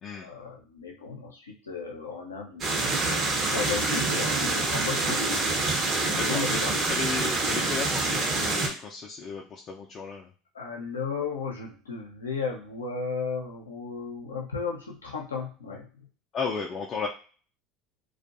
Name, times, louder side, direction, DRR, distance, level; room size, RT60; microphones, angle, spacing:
voice 1, 0.1-5.2 5.5-5.7 6.0-6.7 10.5-15.9, left 5 dB, 90° left, 0 dB, 0.6 m, -34 dB
sound 1, 2.6-8.7, right 3 dB, 40° right, 0.8 m, -26 dB
voice 2, 6.2-10.3 16.3-17.1, left 5 dB, 40° left, 0 dB, 0.4 m, -34 dB
2.5 x 2.3 x 2.5 m, 0.39 s
hypercardioid pair, 75°, 0 cm